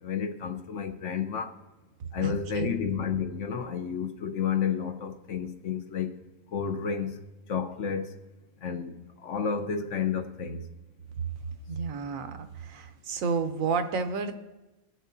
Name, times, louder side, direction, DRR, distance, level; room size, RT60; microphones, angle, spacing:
voice 1, 0.0-1.6 2.1-6.1 6.5-7.2 7.5-8.1 8.6-10.7, left 7 dB, 65° left, 1.0 m, -31 dB
voice 2, 2.0-2.7 11.7-14.3, right 5 dB, 75° right, 1.1 m, -31 dB
18.0 x 6.4 x 2.6 m
omnidirectional pair, 1.4 m